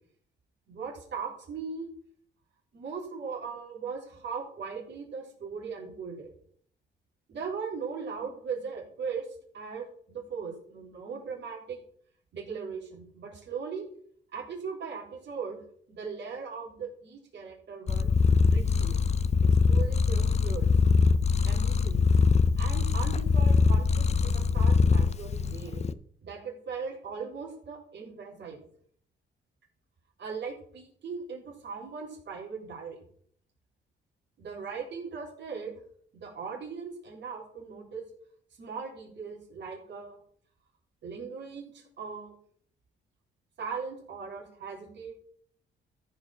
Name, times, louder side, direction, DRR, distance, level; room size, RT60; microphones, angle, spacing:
voice 1, 0.7-1.9 2.7-6.3 7.3-9.3 9.5-11.8 12.3-13.8 14.3-15.6 15.9-18.1 18.5-19.0 19.4-20.7 21.4-22.1 22.6-25.8 26.2-28.6 30.2-33.0 34.4-35.7 36.1-38.1 38.6-40.2 41.0-42.4 43.6-45.1, right 5 dB, 60° right, -2 dB, 3.7 m, -39 dB
Purr, 17.9-25.9, left 5 dB, 35° left, 0.5 m, -23 dB
14.0 x 4.8 x 5.8 m, 0.62 s
cardioid pair, 90°, 20 cm